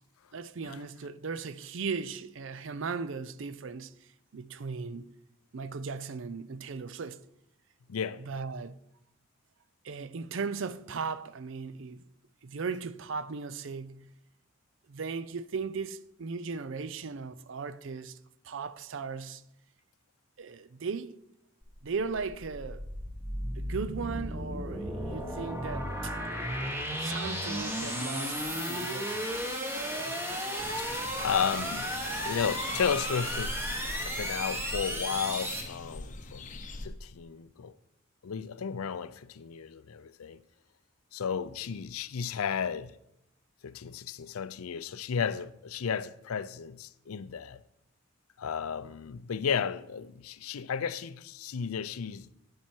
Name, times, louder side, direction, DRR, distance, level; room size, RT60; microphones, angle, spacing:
voice 1, 0.3-5.1 5.5-7.2 8.2-8.8 9.8-12.0 12.4-14.1 14.9-18.2 18.4-19.4 20.4-21.2 21.8-22.9 23.6-26.2 27.0-29.2, right 5 dB, 60° right, 0.5 m, -37 dB
voice 2, 7.9-8.3 30.8-30.9 31.2-31.9 32.2-33.6 34.0-36.5 36.8-37.8 38.2-40.4 41.1-43.0 43.6-47.6 48.4-52.3, left 7 dB, 90° left, 0.5 m, -33 dB
sound 1, 21.6-35.6, equal, 10° right, 1.2 m, -34 dB
sound 2, 30.6-36.9, left 2 dB, 35° left, 0.7 m, -42 dB
10.0 x 7.4 x 4.5 m
head